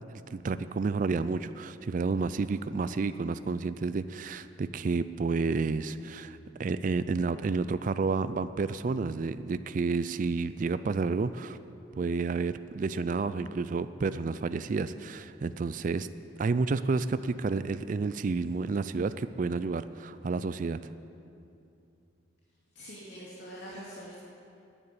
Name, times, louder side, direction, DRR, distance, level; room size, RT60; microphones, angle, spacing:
voice 1, 0.3-11.6 12.0-16.1 16.4-20.8, right 4 dB, 45° right, 13 dB, 0.3 m, -30 dB
voice 2, 22.7-24.2, equal, 70° left, -6 dB, 2.4 m, -44 dB
10.5 x 9.6 x 8.3 m, 2.6 s
head